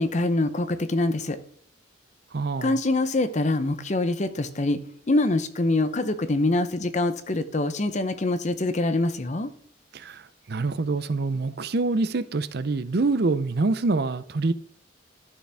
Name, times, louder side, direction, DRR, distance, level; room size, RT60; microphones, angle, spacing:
voice 1, 0.0-1.4 2.6-4.8 5.1-9.5, left 2 dB, 40° left, 0.7 m, -24 dB
voice 2, 2.3-2.8 9.9-14.5, right 3 dB, 55° right, 0.6 m, -26 dB
11.5 x 6.8 x 3.4 m
head